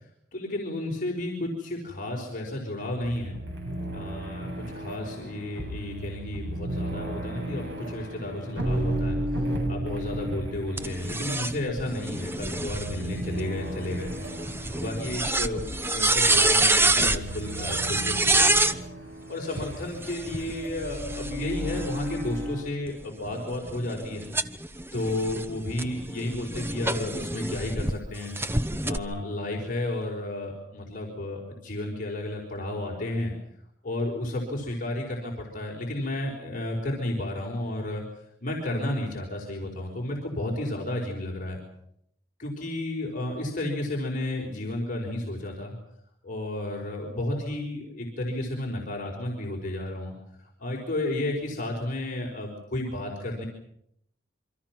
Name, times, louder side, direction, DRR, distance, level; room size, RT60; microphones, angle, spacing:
voice 1, 0.3-3.4 3.9-9.4 9.7-14.1 14.7-24.3 24.9-33.3 33.8-38.0 38.4-41.6 42.4-45.7 46.2-50.1 50.4-53.5, left 1 dB, 45° left, 0 dB, 4.8 m, -32 dB
sound 1, 3.0-22.6, right 1 dB, 65° right, 7.9 m, -34 dB
sound 2, 10.8-18.8 19.9-22.3 22.9-27.9 28.4-29.0, right 2 dB, 15° right, 1.0 m, -27 dB
28.0 x 24.5 x 6.1 m, 0.74 s
head